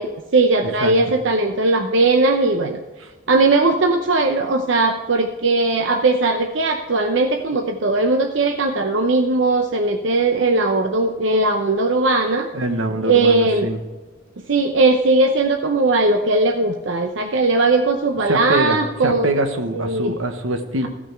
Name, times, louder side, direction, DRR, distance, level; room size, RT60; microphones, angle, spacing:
voice 1, 0.0-2.8 3.3-12.5 13.0-13.7 14.5-19.3 19.7-20.1, right 3 dB, 70° right, 5 dB, 0.7 m, -18 dB
voice 2, 12.5-13.8 18.3-20.9, right 1 dB, 90° right, 7 dB, 1.3 m, -23 dB
15.0 x 6.1 x 4.5 m, 1.3 s
head